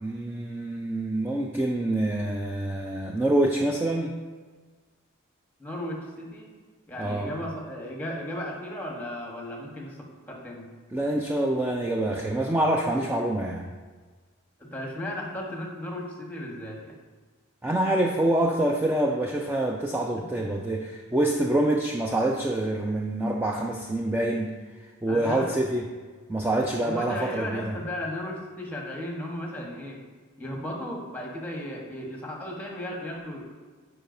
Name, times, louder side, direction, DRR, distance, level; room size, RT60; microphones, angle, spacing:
voice 1, 0.0-4.1 7.0-7.3 10.9-13.7 17.6-24.5 25.0-25.8 26.3-27.7, right 1 dB, 10° right, 0 dB, 0.3 m, -26 dB
voice 2, 5.6-6.5 6.9-10.7 14.6-17.0 20.3-20.4 25.1-25.5 26.8-30.0 30.4-33.4, left 1 dB, 10° left, -1 dB, 1.1 m, -35 dB
9.9 x 4.8 x 2.6 m, 1.4 s
head